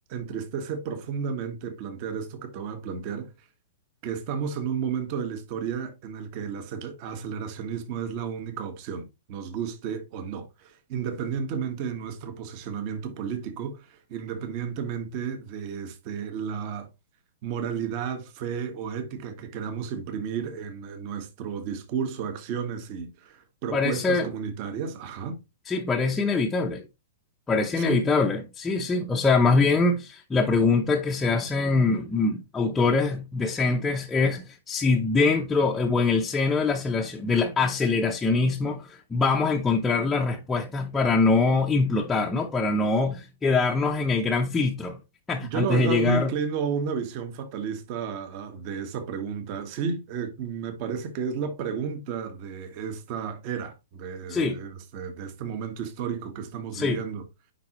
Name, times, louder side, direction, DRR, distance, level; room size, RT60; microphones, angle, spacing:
voice 1, 0.1-3.3 4.0-16.9 17.4-25.4 27.7-28.1 45.5-57.2, right 6 dB, 40° right, 1.4 m, -32 dB
voice 2, 23.7-24.3 25.7-26.8 27.5-45.0 45.3-46.3 54.3-54.6 56.7-57.0, left 3 dB, 10° left, 0.7 m, -23 dB
9.6 x 3.8 x 3.0 m
hypercardioid pair, 150°, 0 cm